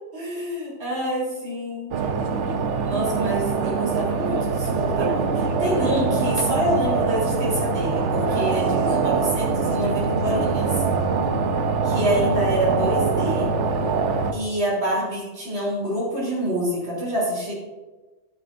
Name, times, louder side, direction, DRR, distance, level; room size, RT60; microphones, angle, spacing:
voice 1, 0.1-2.0 2.8-10.7 11.8-13.5 14.3-17.5, equal, 60° right, -7 dB, 3.9 m, -26 dB
sound 1, 1.9-14.3, right 4 dB, 85° right, 1.2 m, -23 dB
13.0 x 11.0 x 2.7 m, 1.2 s
omnidirectional pair, 1.2 m